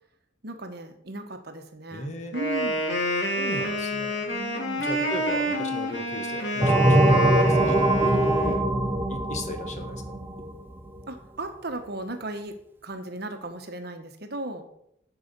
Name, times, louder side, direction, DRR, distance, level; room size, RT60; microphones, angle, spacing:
voice 1, 0.4-2.8 4.3-4.9 8.0-8.6 11.1-12.5 12.8-14.7, right 1 dB, 55° right, 7 dB, 1.2 m, -36 dB
voice 2, 1.9-2.4 3.3-4.2 4.8-8.0 8.3-8.6 9.1-10.2, left 1 dB, 35° left, 5 dB, 1.4 m, -37 dB
Wind instrument woodwind instrument, 2.3-8.6, equal, 60° left, 2.6 m, -28 dB
sound 1, 6.6-11.0, right 1 dB, 10° right, 0.8 m, -22 dB
11.5 x 4.9 x 6.8 m, 0.77 s
head